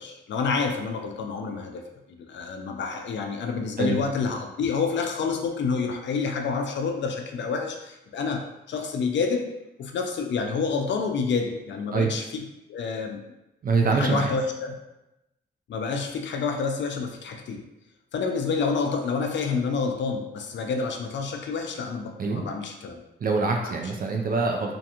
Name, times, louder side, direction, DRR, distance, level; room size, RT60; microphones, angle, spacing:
voice 1, 0.0-1.8 2.1-9.5 9.8-13.2 13.9-14.8 15.7-17.6 18.1-23.0 23.6-23.7, left 5 dB, 75° left, 3 dB, 0.4 m, -28 dB
voice 2, 13.6-14.3 22.2-22.4 23.2-24.8, right 4 dB, 50° right, 1 dB, 0.4 m, -24 dB
2.5 x 2.2 x 2.8 m, 0.93 s
cardioid pair, 65°, 19 cm